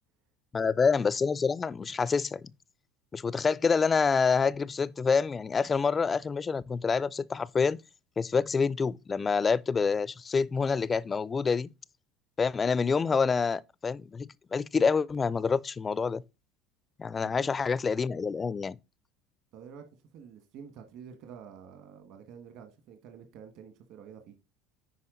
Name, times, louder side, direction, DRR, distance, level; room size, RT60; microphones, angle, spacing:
voice 1, 0.5-2.5 3.1-7.8 8.2-11.7 12.4-16.2 17.0-18.8, left 5 dB, 20° left, 0.4 m, -27 dB
voice 2, 19.5-24.3, right 7 dB, 60° right, 1.6 m, -49 dB
10.0 x 4.7 x 3.8 m
supercardioid pair, 135°, 0 cm